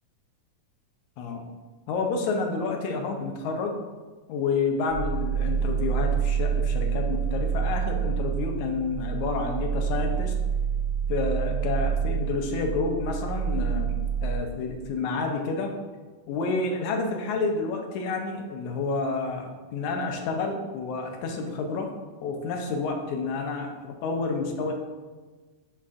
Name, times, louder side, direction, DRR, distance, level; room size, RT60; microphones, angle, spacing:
voice 1, 1.9-3.8 4.3-10.3 11.1-15.8 16.3-21.9 22.2-24.7, left 4 dB, 80° left, 3 dB, 2.1 m, -29 dB
sound 1, 4.9-14.4, right 7 dB, 15° left, 0.6 m, -27 dB
9.6 x 4.1 x 2.5 m, 1.3 s
omnidirectional pair, 3.5 m